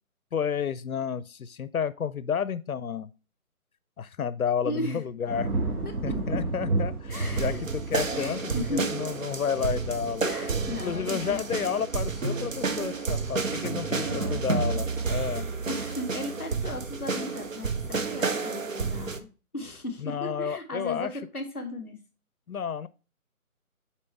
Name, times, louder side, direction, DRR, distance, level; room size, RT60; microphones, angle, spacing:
voice 1, 0.3-3.1 4.0-5.5 6.0-10.2 10.8-15.5 20.0-21.1 22.5-22.9, left 7 dB, 75° left, 0.6 m, -31 dB
voice 2, 4.6-5.0 5.8-6.2 7.1-7.6 8.1-8.9 10.2-11.4 14.1-14.4 15.7-19.3 19.5-21.9, left 2 dB, 10° left, 0.9 m, -36 dB
sound 1, 5.3-16.6 17.0-17.4, right 2 dB, 85° right, 2.0 m, -35 dB
sound 2, 7.1-19.2, right 4 dB, 60° right, 1.0 m, -31 dB
7.4 x 4.3 x 3.3 m
figure-of-eight pair, 170°, 44 cm